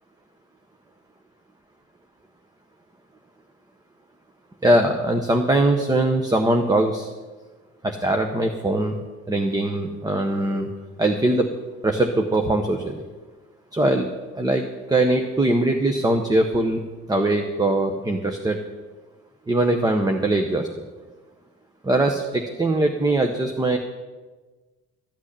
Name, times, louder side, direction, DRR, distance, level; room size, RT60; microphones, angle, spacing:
voice 1, 4.6-7.1 7.8-9.0 9.3-10.7 11.0-11.5 11.8-13.0 13.7-14.1 14.4-16.8 17.1-18.6 19.5-20.9 21.8-23.8, right 1 dB, 15° right, 5 dB, 0.8 m, -21 dB
13.5 x 6.2 x 9.9 m, 1.3 s
cardioid pair, 140°, 29 cm